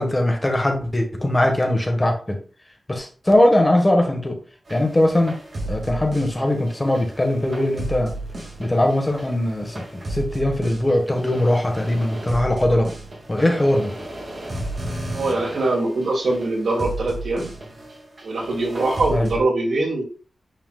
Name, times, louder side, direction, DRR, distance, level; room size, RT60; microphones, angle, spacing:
voice 1, 0.0-2.4 2.9-4.4 4.7-5.4 5.6-8.1 8.6-12.9 13.3-13.9 19.1-19.3, left 1 dB, 20° left, 3 dB, 1.4 m, -20 dB
sound 1, 4.7-19.4, right 1 dB, 45° right, 2.2 m, -34 dB
voice 2, 15.1-17.5 18.2-20.0, right 2 dB, 85° right, -1 dB, 2.6 m, -22 dB
9.1 x 5.0 x 2.4 m, 0.37 s
wide cardioid pair, 140°, 0 cm